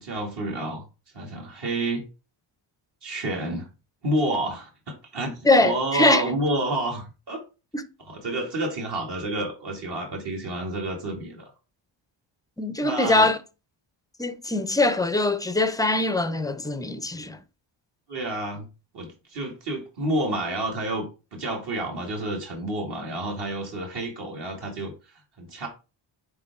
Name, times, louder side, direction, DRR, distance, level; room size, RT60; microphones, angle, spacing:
voice 1, 0.0-0.9 1.1-2.0 3.0-3.7 4.0-7.4 8.1-11.5 12.8-13.3 18.1-18.7 18.9-24.9 25.4-25.7, right 1 dB, 55° right, 2.2 m, -29 dB
voice 2, 5.4-6.2 7.7-7.9 12.6-13.4 14.2-17.4, left 2 dB, 10° left, 0.4 m, -22 dB
9.4 x 3.7 x 3.6 m
wide cardioid pair, 160°, 48 cm